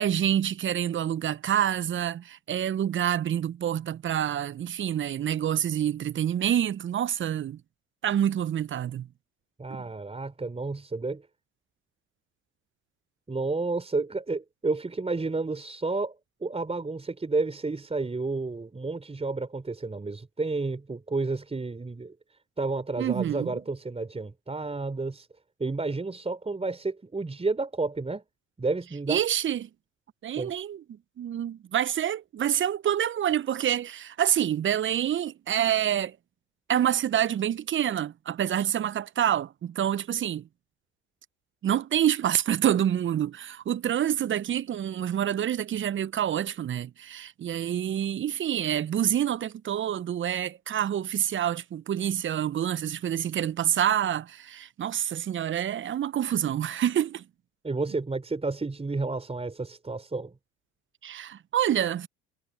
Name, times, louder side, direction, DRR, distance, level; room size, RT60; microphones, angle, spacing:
voice 1, 0.0-7.6 8.0-9.1 23.0-23.5 29.1-29.7 30.2-30.8 31.2-36.2 36.7-40.5 41.6-57.3 61.0-62.1, right 10 dB, 35° right, 0.9 m, -27 dB
voice 2, 9.6-11.3 13.3-16.2 16.4-25.3 25.6-28.2 28.6-29.2 30.4-30.5 57.6-60.3, right 3 dB, 15° right, 4.5 m, -31 dB
hypercardioid pair, 65°, 35 cm